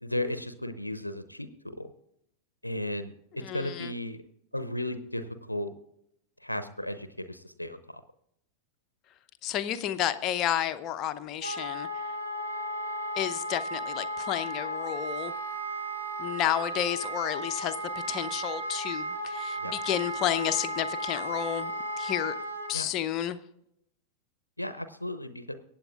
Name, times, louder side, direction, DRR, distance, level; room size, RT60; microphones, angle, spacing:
voice 1, 0.0-1.9 2.6-4.2 4.5-5.7 6.4-8.0 19.6-19.7 22.7-22.9 24.6-25.5, left 1 dB, 85° left, 11 dB, 0.7 m, -35 dB
voice 2, 3.4-3.9 9.4-11.9 13.2-15.3 16.2-17.8 18.1-21.7 22.0-22.4 22.7-23.4, left 11 dB, 35° left, 10 dB, 0.8 m, -31 dB
Wind instrument woodwind instrument, 11.4-22.7, right 1 dB, 80° right, 2.8 m, -35 dB
23.5 x 8.8 x 2.4 m, 0.76 s
figure-of-eight pair, 90°, 0 cm